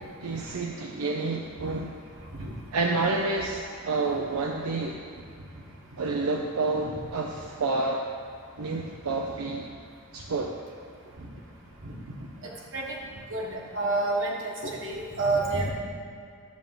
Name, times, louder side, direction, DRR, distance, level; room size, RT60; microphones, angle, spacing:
voice 1, 0.2-1.9 2.7-5.0 6.0-8.1 8.6-9.6 10.1-10.6, right 3 dB, 85° right, 1 dB, 0.5 m, -29 dB
voice 2, 13.3-15.7, right 2 dB, 60° right, -1 dB, 1.4 m, -29 dB
10.5 x 3.5 x 7.2 m, 2.3 s
head